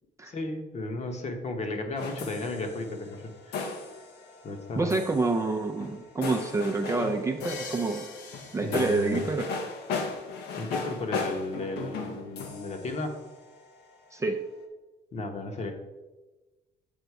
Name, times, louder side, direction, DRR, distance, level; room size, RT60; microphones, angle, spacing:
voice 1, 0.2-3.8 4.4-5.0 8.6-9.2 10.5-13.2 15.1-15.7, left 2 dB, 40° left, 4 dB, 1.1 m, -34 dB
sound 1, 2.0-13.8, left 4 dB, 80° left, 1.0 m, -37 dB
voice 2, 4.8-8.1 8.5-9.5 14.1-14.4, right 3 dB, 20° right, 3 dB, 0.5 m, -27 dB
8.0 x 4.0 x 4.7 m, 1.1 s
cardioid pair, 110°, 17 cm